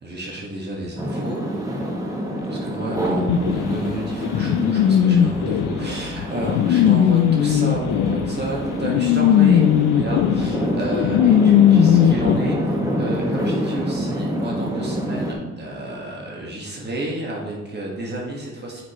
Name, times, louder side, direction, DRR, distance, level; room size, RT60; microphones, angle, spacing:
voice 1, 0.0-1.4 2.5-3.2 3.5-9.6 9.9-18.8, right 1 dB, 35° right, -3 dB, 1.6 m, -31 dB
sound 1, 1.0-15.3, equal, 10° right, 1.5 m, -27 dB
sound 2, 3.3-12.4, left 10 dB, 75° left, 0.5 m, -18 dB
9.0 x 5.2 x 3.0 m, 1.2 s
cardioid pair, 90°, 30 cm